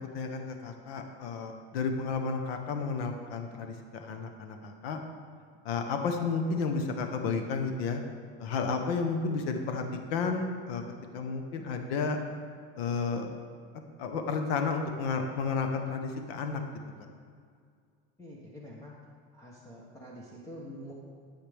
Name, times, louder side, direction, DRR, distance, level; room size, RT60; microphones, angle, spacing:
voice 1, 0.0-5.0 5.6-8.0 8.4-9.8 10.1-10.8 11.1-12.2 12.8-13.3 14.0-16.6, left 4 dB, 80° left, 5 dB, 1.1 m, -32 dB
voice 2, 18.2-18.9 19.3-20.9, equal, 10° left, -4 dB, 0.9 m, -46 dB
13.5 x 7.8 x 3.5 m, 2.2 s
cardioid pair, 155°, 30 cm